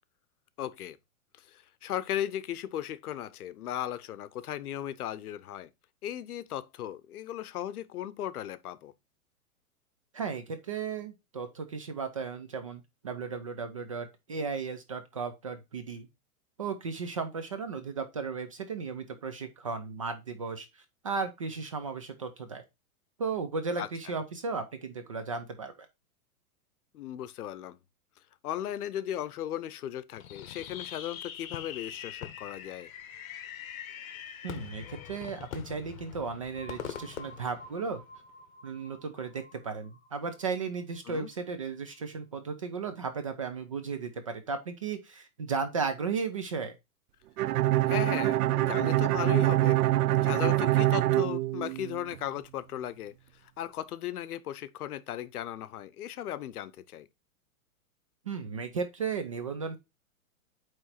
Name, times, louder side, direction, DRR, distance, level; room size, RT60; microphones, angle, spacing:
voice 1, 0.6-1.0 1.4-5.7 6.0-8.9 23.8-24.1 26.9-27.8 28.4-32.9 41.0-41.3 47.9-49.8 50.2-57.1, left 11 dB, 80° left, 0.8 m, -37 dB
voice 2, 10.1-16.1 16.6-22.6 23.2-25.7 34.4-38.0 38.6-46.7 58.3-59.8, right 5 dB, 25° right, 0.3 m, -35 dB
Fireworks, 30.2-38.3, left 10 dB, 65° left, 1.2 m, -43 dB
sound 1, 36.5-42.2, left 1 dB, 15° left, 1.9 m, -52 dB
Bowed string instrument, 47.4-52.2, right 16 dB, 80° right, 0.6 m, -25 dB
8.8 x 3.2 x 4.2 m
hypercardioid pair, 155°, 44 cm